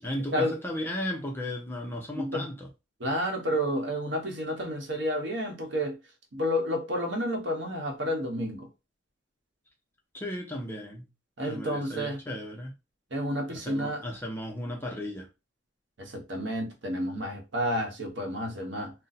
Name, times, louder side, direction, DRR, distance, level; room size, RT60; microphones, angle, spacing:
voice 1, 0.0-2.7 10.1-11.1 11.4-12.7 13.5-15.3, left 1 dB, 10° left, 0.6 m, -35 dB
voice 2, 3.0-6.0 6.3-8.7 11.4-12.2 13.1-14.0 16.0-18.9, equal, 70° right, 1.0 m, -30 dB
2.6 x 2.2 x 4.0 m
head